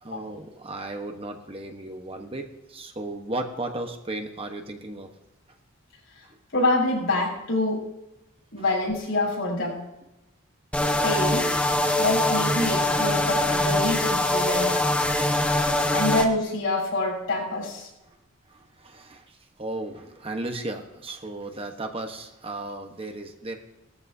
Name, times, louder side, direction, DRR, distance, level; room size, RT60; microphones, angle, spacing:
voice 1, 0.0-5.1 15.2-15.4 18.5-23.6, right 2 dB, 25° right, 4 dB, 1.2 m, -35 dB
voice 2, 6.5-7.8 8.5-9.8 11.0-11.5 12.0-14.9 15.9-17.9, left 2 dB, 75° left, -2 dB, 6.4 m, -26 dB
sound 1, 10.7-16.3, left 1 dB, 5° left, 1.1 m, -23 dB
20.5 x 14.0 x 2.8 m, 0.93 s
head